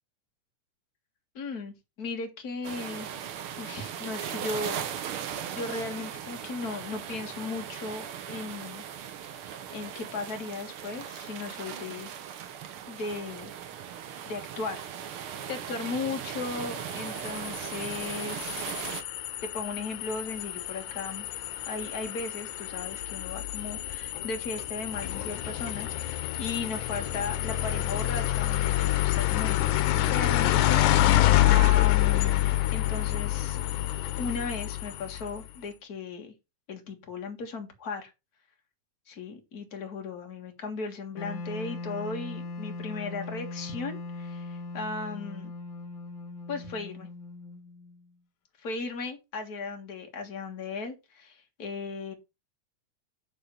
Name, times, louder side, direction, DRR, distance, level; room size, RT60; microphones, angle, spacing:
voice 1, 1.3-3.2 3.6-4.8 5.5-8.8 9.3-9.4 9.7-12.1 12.9-13.5 14.2-18.6 19.4-21.2 21.7-33.6 34.2-36.3 36.7-38.1 39.1-45.5 46.5-47.1 48.6-52.1, left 4 dB, 35° left, 1.7 m, -36 dB
sound 1, 2.6-19.0, right 9 dB, 70° right, 1.3 m, -38 dB
sound 2, 16.9-35.4, left 14 dB, 90° left, 2.3 m, -27 dB
Wind instrument woodwind instrument, 41.1-48.1, left 3 dB, 70° left, 2.6 m, -39 dB
10.0 x 3.6 x 6.8 m
omnidirectional pair, 3.6 m